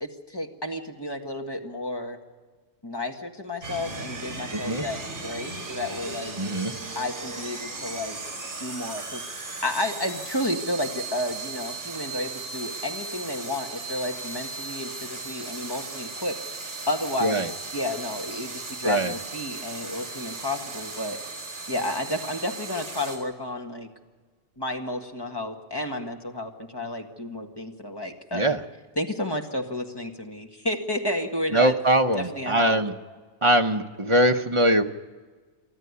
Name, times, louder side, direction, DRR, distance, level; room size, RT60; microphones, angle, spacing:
voice 1, 0.0-2.2 2.8-6.3 7.0-8.2 8.6-9.2 9.6-21.2 21.7-23.9 24.6-28.5 29.0-31.7 32.2-32.8, left 1 dB, 20° left, 3 dB, 1.8 m, -31 dB
sound 1, 3.6-23.2, right 3 dB, 50° right, 4.8 m, -37 dB
voice 2, 4.5-4.9 6.4-6.7 17.2-17.5 18.8-19.1 28.3-28.6 31.5-32.9 33.4-34.8, right 1 dB, 30° right, 6 dB, 1.0 m, -22 dB
24.5 x 13.5 x 9.7 m, 1.4 s
omnidirectional pair, 1.2 m